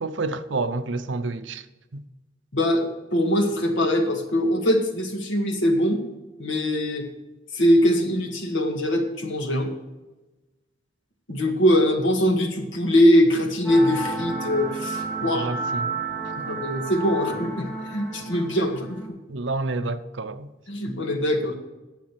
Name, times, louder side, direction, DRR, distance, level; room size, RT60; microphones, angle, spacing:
voice 1, 0.0-1.7 1.9-2.0 15.2-15.9 16.4-16.5 19.3-20.5, right 3 dB, 80° right, 0.7 m, -29 dB
voice 2, 2.5-6.0 6.4-7.1 7.5-9.7 11.3-15.5 16.4-19.0 20.7-21.6, equal, 85° left, 1.9 m, -22 dB
sound 1, 13.6-19.1, right 3 dB, 5° right, 3.4 m, -31 dB
10.5 x 7.7 x 6.1 m
head